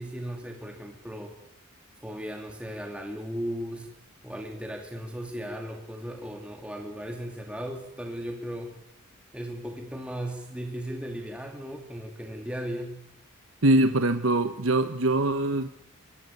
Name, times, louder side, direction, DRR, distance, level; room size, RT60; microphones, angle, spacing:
voice 1, 0.0-1.3 2.0-3.9 4.2-8.7 9.3-13.0, equal, 5° right, 2 dB, 2.6 m, -36 dB
voice 2, 13.6-15.7, right 2 dB, 70° right, 9 dB, 1.2 m, -23 dB
24.5 x 19.0 x 9.8 m, 0.80 s
head